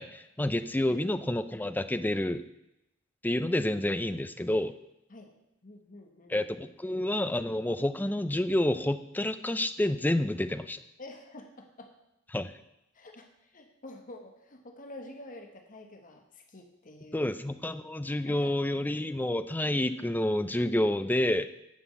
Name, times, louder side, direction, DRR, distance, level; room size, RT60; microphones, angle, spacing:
voice 1, 0.0-2.5 3.2-4.7 6.3-10.8 12.3-12.5 17.1-21.5, left 1 dB, 10° left, 11 dB, 0.5 m, -29 dB
voice 2, 5.6-6.4 11.0-11.9 12.9-17.3 18.2-18.5, left 2 dB, 40° left, 3 dB, 1.2 m, -48 dB
9.7 x 6.0 x 8.1 m, 0.88 s
head